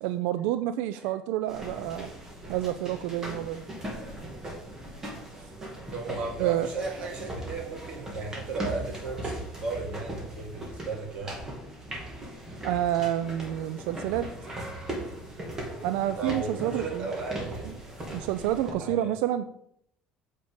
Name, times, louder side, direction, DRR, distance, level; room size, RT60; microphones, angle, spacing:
voice 1, 0.0-2.1 2.5-3.7 6.4-6.7 12.6-14.3 15.8-17.1 18.1-19.6, right 12 dB, 85° right, 12 dB, 0.4 m, -29 dB
sound 1, 1.5-18.7, right 1 dB, 20° right, 2.3 m, -39 dB
voice 2, 5.9-11.4 16.2-17.7 18.5-19.1, right 3 dB, 40° right, 0 dB, 2.6 m, -35 dB
7.4 x 5.4 x 5.1 m, 0.71 s
cardioid pair, 130°, 3 cm